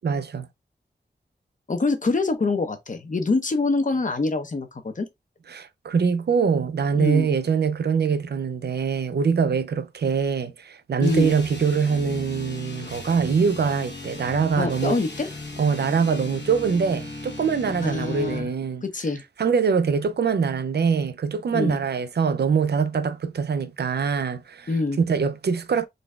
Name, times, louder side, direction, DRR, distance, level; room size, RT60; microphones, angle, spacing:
voice 1, 0.0-0.5 5.5-15.0 15.6-18.8 19.4-24.7 25.0-25.9, right 6 dB, 70° right, 0.4 m, -23 dB
voice 2, 1.7-5.1 7.0-7.3 11.0-11.3 14.6-15.3 17.8-18.5 18.8-19.2 21.5-21.8 24.7-25.0, left 3 dB, 45° left, 0.8 m, -25 dB
sound 1, 11.0-18.5, left 2 dB, 75° left, 1.1 m, -37 dB
4.0 x 2.3 x 3.2 m
wide cardioid pair, 90°, 18 cm